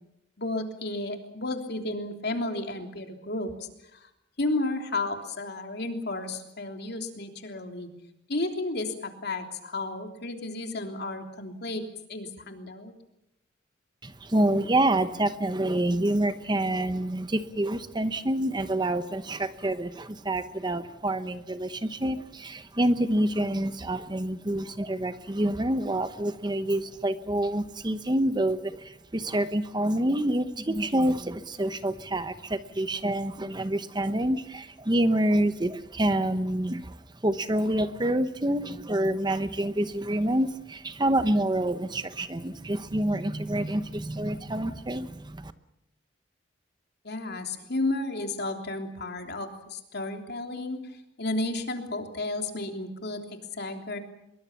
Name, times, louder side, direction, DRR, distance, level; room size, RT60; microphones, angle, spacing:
voice 1, 0.4-4.1 4.4-7.9 8.3-11.8 12.1-12.9 47.0-50.8 51.2-53.2 53.5-54.0, left 2 dB, 55° left, 5 dB, 3.3 m, -32 dB
voice 2, 14.0-45.5, right 1 dB, 20° right, 11 dB, 0.9 m, -27 dB
24.5 x 23.0 x 7.2 m, 0.85 s
head